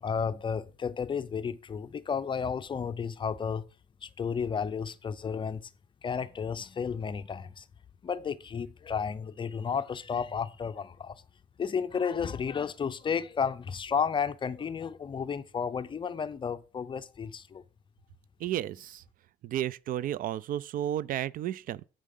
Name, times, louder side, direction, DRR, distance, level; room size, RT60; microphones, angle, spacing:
voice 1, 0.0-3.6 4.0-5.7 6.0-7.7 8.0-11.2 11.6-17.6, left 6 dB, 30° left, 0.5 m, -32 dB
voice 2, 18.4-19.0 19.4-21.8, right 12 dB, 55° right, 0.4 m, -32 dB
7.5 x 4.7 x 5.4 m
cardioid pair, 110°, 17 cm